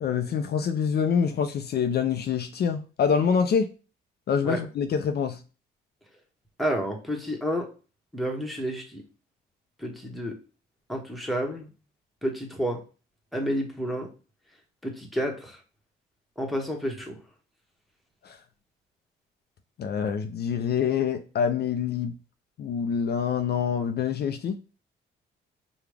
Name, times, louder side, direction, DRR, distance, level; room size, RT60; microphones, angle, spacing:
voice 1, 0.0-3.7 4.3-5.4 18.2-18.4 19.8-22.1 22.6-24.6, left 7 dB, 55° left, 0.5 m, -26 dB
voice 2, 6.6-7.7 8.1-9.0 9.8-10.4 10.9-11.7 12.2-12.8 13.3-14.1 14.8-15.6 16.4-17.2, equal, ahead, 1.2 m, -30 dB
4.9 x 2.3 x 3.4 m
cardioid pair, 90°, 20 cm